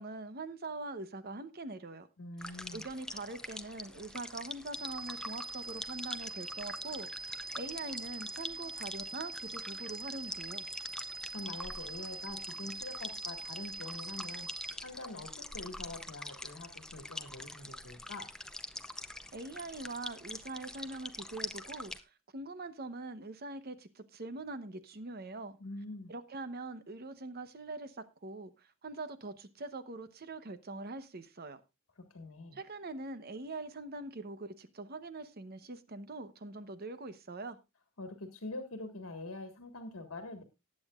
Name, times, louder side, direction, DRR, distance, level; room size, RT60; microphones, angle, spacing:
voice 1, 0.0-2.1 2.4-10.6 19.3-25.6 26.1-31.6 32.5-37.6, right 2 dB, 45° right, 0.9 m, -43 dB
voice 2, 2.2-2.8 11.3-18.3 25.6-26.1 31.9-32.6 38.0-40.4, left 2 dB, 75° left, 1.6 m, -45 dB
sound 1, 2.4-22.0, left 1 dB, 5° left, 0.6 m, -45 dB
sound 2, 4.7-14.7, right 3 dB, 65° right, 4.3 m, -44 dB
19.0 x 8.7 x 2.4 m
head